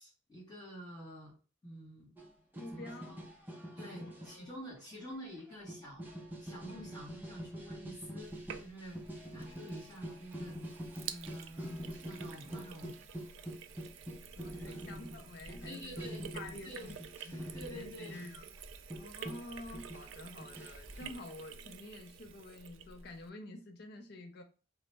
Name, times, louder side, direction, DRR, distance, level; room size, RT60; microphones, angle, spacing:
voice 1, 0.0-1.3 1.6-2.1 2.7-3.2 3.8-6.1 6.4-9.0 9.3-10.6 11.1-11.7 12.0-13.0 14.6-14.9 15.6-16.2 16.6-16.9 17.3-18.2, equal, 20° left, 1.6 m, -48 dB
sound 1, 2.2-2.3 2.5-4.4 4.8-4.9 5.1-5.2 5.4-21.2, equal, 10° right, 0.5 m, -45 dB
voice 2, 2.6-3.3 3.8-4.5 14.4-16.9 17.2-18.5 18.7-24.4, left 2 dB, 55° left, 0.5 m, -49 dB
Sink (filling or washing), 8.2-23.3, right 8 dB, 80° right, 0.3 m, -50 dB
2.9 x 2.0 x 3.3 m
head